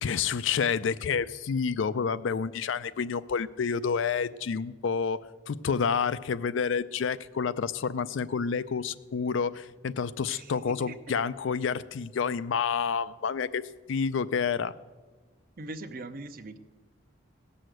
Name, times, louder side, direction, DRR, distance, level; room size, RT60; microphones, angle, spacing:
voice 1, 0.0-14.7, left 6 dB, 70° left, 15 dB, 0.4 m, -29 dB
voice 2, 10.2-11.2 15.6-16.6, right 2 dB, 45° right, 9 dB, 0.7 m, -42 dB
16.5 x 6.4 x 7.7 m, 1.3 s
head